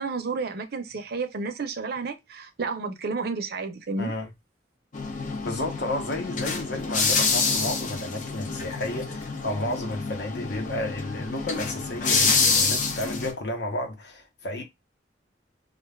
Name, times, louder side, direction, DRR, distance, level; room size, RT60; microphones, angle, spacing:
voice 1, 0.0-4.1, right 4 dB, 60° right, 0.5 m, -31 dB
voice 2, 4.0-4.3 5.4-14.6, left 1 dB, 65° left, 0.8 m, -32 dB
sound 1, 4.9-13.3, left 4 dB, 45° left, 0.6 m, -27 dB
2.5 x 2.3 x 3.2 m
head